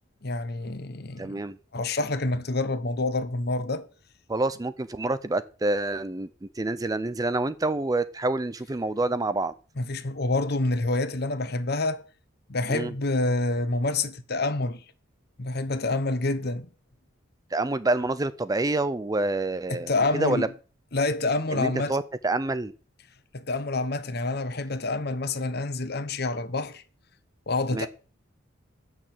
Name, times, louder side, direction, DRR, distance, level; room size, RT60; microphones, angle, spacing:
voice 1, 0.2-1.4 1.7-3.9 9.8-12.0 12.5-14.8 15.4-16.7 19.7-20.5 20.9-22.0 23.3-26.8 27.5-27.9, left 2 dB, 50° left, 1.0 m, -27 dB
voice 2, 1.2-1.6 4.3-9.5 12.7-12.9 17.5-20.5 21.5-22.7 27.7-27.9, right 2 dB, 20° right, 0.4 m, -27 dB
8.8 x 6.2 x 7.6 m
head